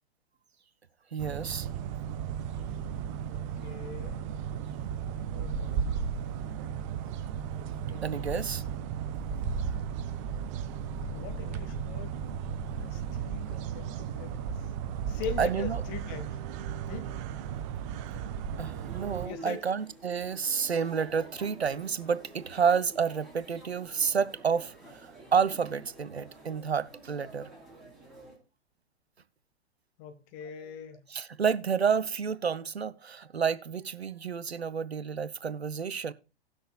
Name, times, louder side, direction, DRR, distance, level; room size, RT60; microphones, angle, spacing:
voice 1, 1.1-1.7 8.0-8.6 15.4-15.8 18.6-27.5 31.1-36.1, right 6 dB, 85° right, 0.6 m, -30 dB
sound 1, 1.2-19.3, right 7 dB, 30° right, 0.5 m, -35 dB
voice 2, 3.3-4.2 5.3-5.9 6.2-6.8 7.8-8.5 11.1-12.2 12.7-14.6 15.1-16.4 16.9-17.1 19.2-19.6 30.0-31.0, left 6 dB, 35° left, 1.5 m, -42 dB
sound 2, 18.6-28.4, right 2 dB, ahead, 3.4 m, -50 dB
18.5 x 6.3 x 2.3 m
figure-of-eight pair, 100°, 31 cm